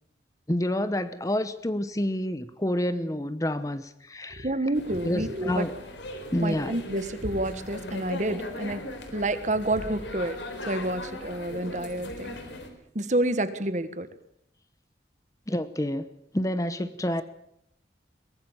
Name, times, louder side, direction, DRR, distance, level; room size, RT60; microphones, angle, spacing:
voice 1, 0.5-4.5 5.0-5.7 6.3-6.7 15.5-16.1 16.3-17.2, left 1 dB, 20° left, 12 dB, 0.8 m, -28 dB
voice 2, 4.4-5.7 6.4-8.8 9.1-12.4 12.9-14.1, right 1 dB, 40° right, 12 dB, 1.4 m, -29 dB
sound 1, 4.7-12.7, left 1 dB, 85° left, 4.0 m, -38 dB
22.5 x 19.0 x 7.3 m, 0.74 s
head